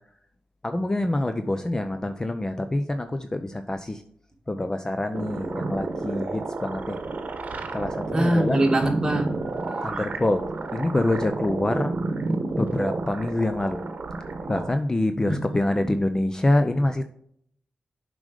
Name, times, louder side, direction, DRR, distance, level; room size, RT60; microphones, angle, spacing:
voice 1, 0.6-4.0 4.5-7.0 7.7-8.6 9.8-12.0 12.6-13.8 14.5-17.1, left 1 dB, 20° left, 8 dB, 0.6 m, -26 dB
sound 1, 5.1-14.7, right 3 dB, 55° right, 1.1 m, -31 dB
voice 2, 8.1-10.0 15.3-15.4 15.8-15.9, right 1 dB, 20° right, 1 dB, 2.0 m, -24 dB
7.2 x 5.1 x 5.0 m, 0.67 s
cardioid pair, 80°, 3 cm